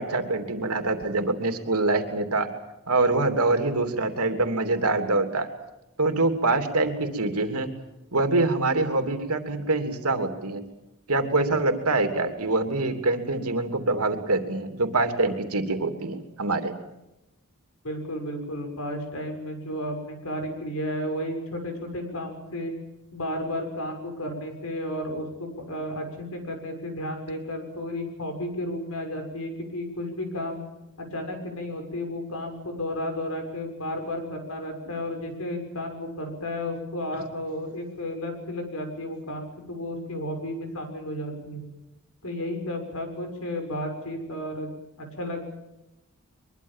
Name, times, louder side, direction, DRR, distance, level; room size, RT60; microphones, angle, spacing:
voice 1, 0.0-2.5 2.9-5.5 6.0-7.7 8.1-10.6 11.1-16.7, right 2 dB, 85° right, 6 dB, 3.1 m, -25 dB
voice 2, 17.8-22.7 23.1-30.7 31.0-41.6 42.2-44.7 45.0-45.4, left 1 dB, 70° left, 5 dB, 6.7 m, -33 dB
23.5 x 22.5 x 7.5 m, 0.95 s
head